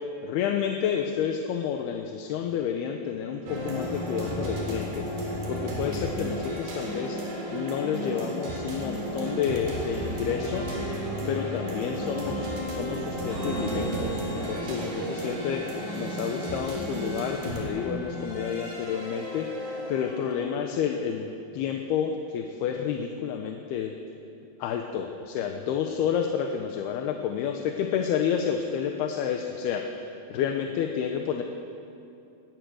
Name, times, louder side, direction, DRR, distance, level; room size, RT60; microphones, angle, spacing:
voice 1, 0.2-5.1 5.5-7.2 7.5-10.6 11.3-23.9 24.6-29.8 30.3-31.4, left 8 dB, 75° left, 4 dB, 2.9 m, -30 dB
sound 1, 3.5-20.4, equal, 60° right, 5.3 m, -33 dB
sound 2, 13.3-16.6, right 1 dB, 10° right, 5.4 m, -37 dB
23.5 x 18.5 x 6.5 m, 2.7 s
omnidirectional pair, 4.7 m